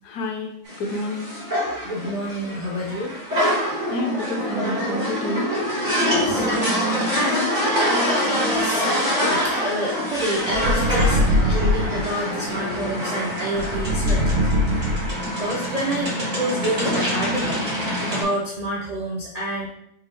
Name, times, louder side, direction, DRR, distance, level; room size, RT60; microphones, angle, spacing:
voice 1, 0.0-1.3 3.9-5.5, left 1 dB, 90° left, 4 dB, 1.3 m, -29 dB
sound 1, 0.7-18.2, equal, 30° right, 1.7 m, -25 dB
voice 2, 1.8-3.4 3.7-3.9 6.1-6.6 7.1-8.8 9.2-14.5 15.4-17.7 18.0-19.7, right 1 dB, 65° right, -3 dB, 0.4 m, -28 dB
sound 2, 10.5-12.0 13.5-15.4, left 1 dB, 45° right, 1.1 m, -21 dB
4.9 x 3.1 x 3.4 m, 0.75 s
omnidirectional pair, 1.6 m